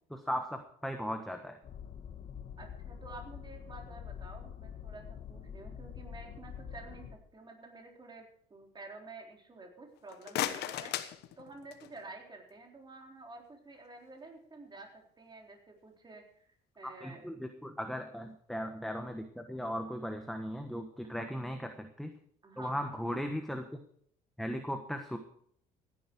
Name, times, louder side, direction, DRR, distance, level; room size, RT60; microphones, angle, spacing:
voice 1, 0.1-1.6 17.0-22.1 22.6-23.7 24.4-25.2, equal, ahead, 5 dB, 1.3 m, -37 dB
sound 1, 1.6-7.2, left 8 dB, 50° left, 1.6 m, -46 dB
voice 2, 2.6-10.9 11.4-16.2 16.8-17.2 21.0-21.3 22.4-23.0, right 3 dB, 25° right, 2 dB, 3.9 m, -50 dB
sound 2, 10.0-12.0, left 12 dB, 80° left, 1.1 m, -37 dB
16.0 x 11.0 x 4.7 m, 0.64 s
cardioid pair, 110°, 17 cm